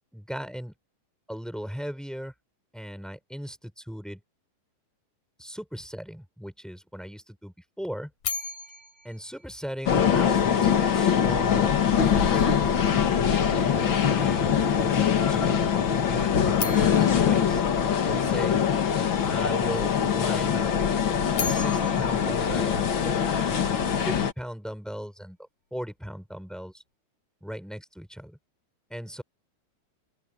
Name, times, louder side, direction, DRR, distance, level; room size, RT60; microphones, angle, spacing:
voice 1, 0.1-0.7 1.3-2.3 2.7-4.2 5.4-8.1 9.0-12.6 13.3-17.6 18.0-18.6 19.2-20.7 21.3-23.3 24.0-25.4 25.7-26.8 27.4-28.4 28.9-29.2, equal, ahead, 3.3 m, -38 dB
sound 1, 8.2-10.4 16.5-18.7 21.1-23.5, left 5 dB, 50° left, 6.6 m, -37 dB
sound 2, 9.9-24.3, left 8 dB, 70° left, 1.1 m, -23 dB
open air
omnidirectional pair, 4.7 m